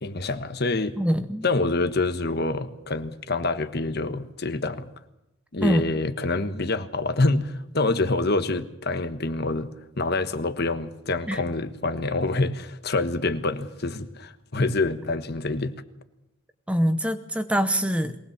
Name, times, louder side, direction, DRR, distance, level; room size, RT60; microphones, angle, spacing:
voice 1, 0.0-1.0 1.4-4.9 5.5-9.7 10.0-15.7, left 2 dB, 50° left, 1.3 m, -26 dB
voice 2, 1.0-1.4 5.6-5.8 11.3-11.4 16.7-18.2, equal, 5° right, 0.8 m, -24 dB
23.0 x 19.0 x 7.4 m
head